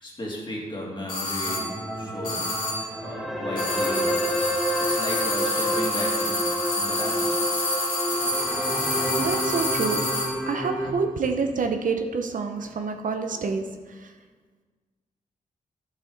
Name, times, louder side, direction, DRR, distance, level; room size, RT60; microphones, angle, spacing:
voice 1, 0.0-4.2 4.6-7.4 9.5-9.6, left 1 dB, 35° left, -2 dB, 2.4 m, -35 dB
sound 1, 1.1-1.8 2.2-3.0 3.6-10.4, left 2 dB, 70° left, 2.5 m, -28 dB
sound 2, 1.5-10.9, equal, ahead, 1.2 m, -29 dB
voice 2, 9.2-10.0 10.4-13.6 14.0-14.1, right 5 dB, 70° right, 5 dB, 0.8 m, -27 dB
10.0 x 6.3 x 3.9 m, 1.4 s
cardioid pair, 75°, 14 cm